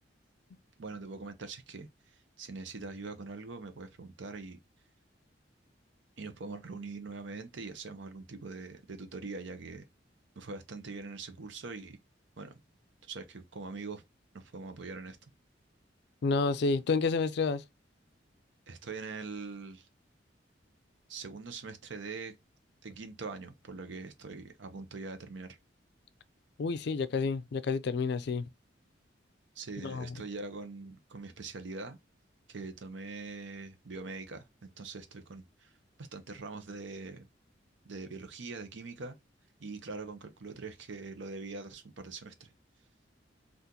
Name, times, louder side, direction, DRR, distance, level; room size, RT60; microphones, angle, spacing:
voice 1, 0.8-4.6 6.2-9.8 10.4-12.0 12.4-12.6 13.0-14.0 14.3-15.3 18.7-19.9 21.1-22.4 22.8-25.6 29.5-32.0 32.5-35.7 36.0-37.3 37.8-39.2 39.6-42.5, right 3 dB, 75° right, 0.7 m, -43 dB
voice 2, 16.2-17.6 26.6-28.5 29.8-30.1, left 4 dB, 60° left, 0.4 m, -29 dB
3.7 x 2.5 x 2.7 m
head